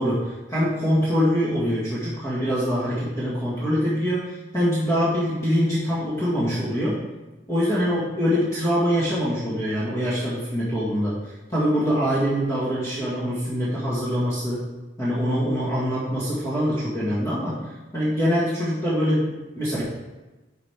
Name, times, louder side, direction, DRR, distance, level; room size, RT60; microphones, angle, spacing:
voice 1, 0.0-7.0 7.5-11.2 11.5-14.6 15.0-17.6 17.9-19.8, equal, 15° left, -9 dB, 1.8 m, -24 dB
10.0 x 5.3 x 3.4 m, 1.1 s
head